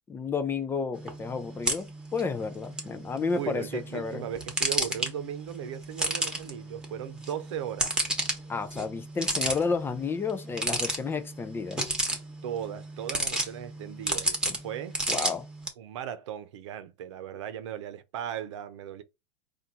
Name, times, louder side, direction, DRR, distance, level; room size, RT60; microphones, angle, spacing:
voice 1, 0.1-4.2 8.5-11.9 15.1-15.5, left 5 dB, 15° left, 0.4 m, -31 dB
sound 1, 0.9-15.7, right 2 dB, 5° right, 1.1 m, -33 dB
voice 2, 3.3-8.0 12.4-15.0 15.8-19.0, right 9 dB, 80° right, 0.8 m, -37 dB
4.4 x 2.5 x 3.8 m
supercardioid pair, 140°, 15 cm